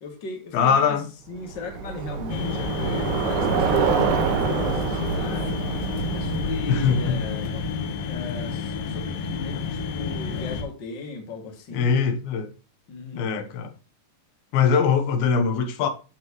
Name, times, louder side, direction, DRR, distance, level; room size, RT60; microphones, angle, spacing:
voice 1, 0.0-1.0 1.3-5.5 6.1-7.5 8.1-12.1 12.9-13.4, left 3 dB, 35° left, 2.4 m, -36 dB
voice 2, 0.5-1.1 6.7-7.2 11.7-12.5 13.1-13.7 14.5-15.9, left 6 dB, 85° left, 2.9 m, -22 dB
Bicycle, 1.4-7.9, right 6 dB, 65° right, 2.4 m, -27 dB
sound 1, 2.3-10.6, left 5 dB, 70° left, 2.9 m, -30 dB
11.5 x 4.8 x 3.0 m
omnidirectional pair, 4.2 m